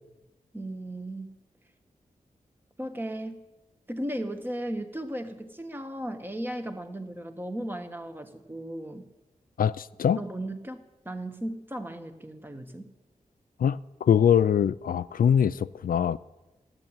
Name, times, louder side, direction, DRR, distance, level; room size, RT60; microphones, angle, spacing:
voice 1, 0.5-1.4 2.8-3.4 3.9-9.1 10.2-12.9, right 1 dB, 15° right, 1.5 m, -36 dB
voice 2, 9.6-10.2 13.6-16.2, left 8 dB, 85° left, 0.4 m, -23 dB
14.5 x 11.0 x 8.9 m
wide cardioid pair, 115°, 14 cm